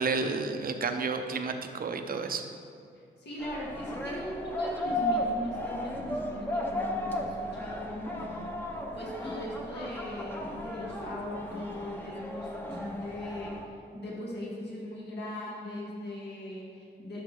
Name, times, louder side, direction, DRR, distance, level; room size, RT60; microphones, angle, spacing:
voice 1, 0.0-2.5, right 4 dB, 50° right, 6 dB, 0.7 m, -31 dB
voice 2, 3.2-8.6 8.9-13.6 13.9-17.2, left 1 dB, 65° left, -5 dB, 2.0 m, -39 dB
sound 1, 3.4-13.7, left 1 dB, 10° left, 0.9 m, -35 dB
11.5 x 5.8 x 3.7 m, 2.4 s
cardioid pair, 100°, 19 cm